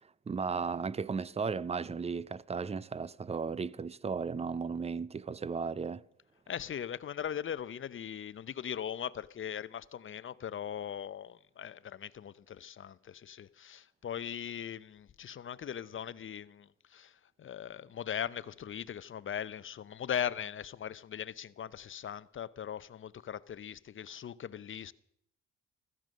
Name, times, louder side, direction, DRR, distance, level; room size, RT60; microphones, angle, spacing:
voice 1, 0.3-6.0, right 5 dB, 20° right, 0.5 m, -35 dB
voice 2, 6.5-24.9, left 9 dB, 40° left, 0.7 m, -39 dB
15.5 x 14.0 x 6.5 m
cardioid pair, 90°, 30 cm